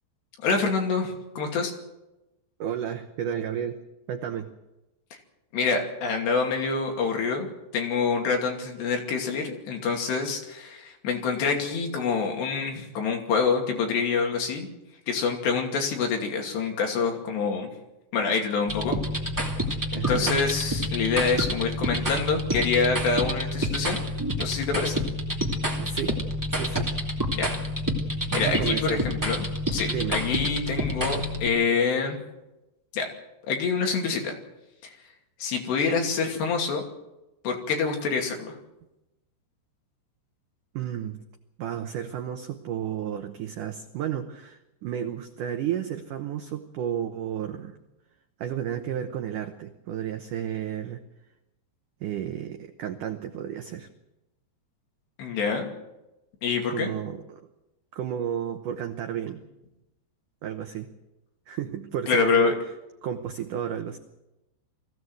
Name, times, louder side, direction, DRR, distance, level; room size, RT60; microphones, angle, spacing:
voice 1, 0.4-1.7 5.5-7.5 7.7-14.7 15.1-17.7 18.1-19.0 19.9-24.0 24.4-25.0 27.4-27.7 28.3-29.4 29.7-32.2 32.9-33.1 33.5-34.3 35.4-36.8 37.4-38.5 55.2-55.7 56.4-56.9 62.1-62.6, left 5 dB, 70° left, 2 dB, 4.6 m, -26 dB
voice 2, 2.6-3.8 4.1-4.5 19.9-20.4 25.8-26.2 26.5-26.9 28.3-29.1 29.9-30.2 40.7-41.2 41.6-47.8 48.4-51.0 52.0-53.9 56.7-57.4 57.9-59.4 60.4-60.9 61.5-62.5 63.0-64.0, right 9 dB, 90° right, 6 dB, 1.8 m, -32 dB
sound 1, 18.7-31.5, equal, 20° right, 0.5 m, -28 dB
21.5 x 16.0 x 8.0 m, 0.97 s
omnidirectional pair, 5.2 m